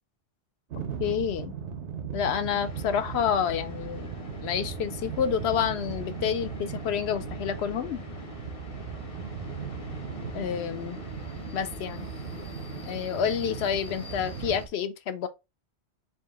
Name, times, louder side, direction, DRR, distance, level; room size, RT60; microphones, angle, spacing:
sound 1, 0.7-14.7, right 6 dB, 90° right, 1.0 m, -38 dB
voice 1, 1.0-1.5 2.1-4.1 4.4-8.0 10.3-11.0 11.5-12.1 12.9-15.3, left 8 dB, 75° left, 0.8 m, -29 dB
sound 2, 2.5-14.7, left 1 dB, 35° left, 0.7 m, -44 dB
4.0 x 2.7 x 3.4 m
omnidirectional pair, 1.1 m